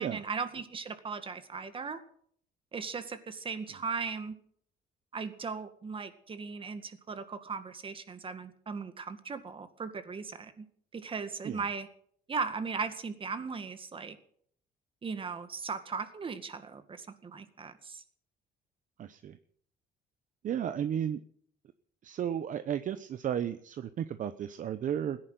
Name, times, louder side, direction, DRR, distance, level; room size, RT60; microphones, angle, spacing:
voice 1, 0.0-2.0 2.7-4.4 5.1-10.7 10.9-11.9 12.3-14.2 15.0-18.0, right 5 dB, 30° right, 11 dB, 1.9 m, -38 dB
voice 2, 19.0-19.4 20.4-21.2 22.0-25.2, right 9 dB, 50° right, 12 dB, 0.9 m, -33 dB
17.0 x 10.5 x 7.8 m, 0.62 s
cardioid pair, 110°, 17 cm